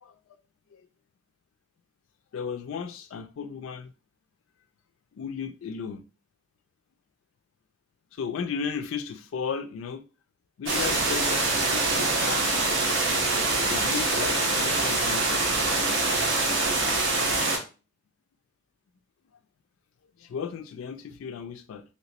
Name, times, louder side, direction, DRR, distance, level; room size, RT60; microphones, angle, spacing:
voice 1, 2.3-3.9 5.2-6.0 8.1-10.0 10.6-12.5 13.7-15.4 20.2-21.8, left 6 dB, 85° left, 0.3 m, -35 dB
sound 1, 10.7-17.6, right 3 dB, 70° right, 1.0 m, -24 dB
3.2 x 3.0 x 2.9 m
head